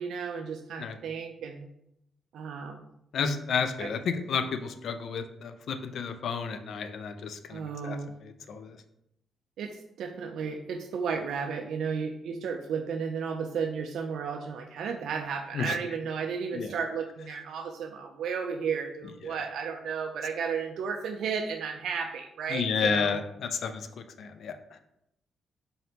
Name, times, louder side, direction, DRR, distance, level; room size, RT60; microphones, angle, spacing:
voice 1, 0.0-1.7 2.3-2.9 3.8-3.9 7.5-8.1 9.6-23.2, right 6 dB, 75° right, 4 dB, 0.3 m, -33 dB
voice 2, 3.1-8.8 15.5-15.8 16.5-16.7 19.2-19.4 22.5-23.9 24.2-24.5, left 5 dB, 65° left, 9 dB, 0.4 m, -31 dB
3.9 x 2.8 x 3.3 m, 0.79 s
cardioid pair, 100°, 0 cm